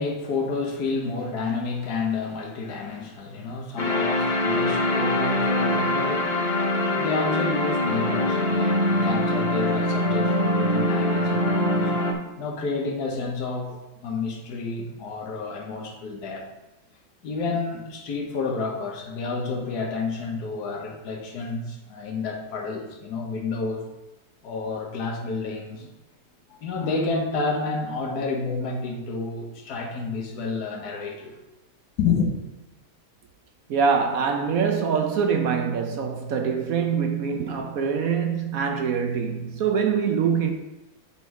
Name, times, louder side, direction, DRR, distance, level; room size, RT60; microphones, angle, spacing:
voice 1, 0.0-6.5 7.0-11.9 12.4-16.5 17.2-23.9 24.4-25.9 26.5-31.3 32.0-32.3, left 4 dB, 65° left, 1.6 m, -30 dB
sound 1, 3.8-12.1, left 1 dB, 45° left, 0.6 m, -23 dB
voice 2, 33.7-40.5, right 6 dB, 65° right, 1.0 m, -24 dB
8.2 x 3.9 x 4.7 m
omnidirectional pair, 1.8 m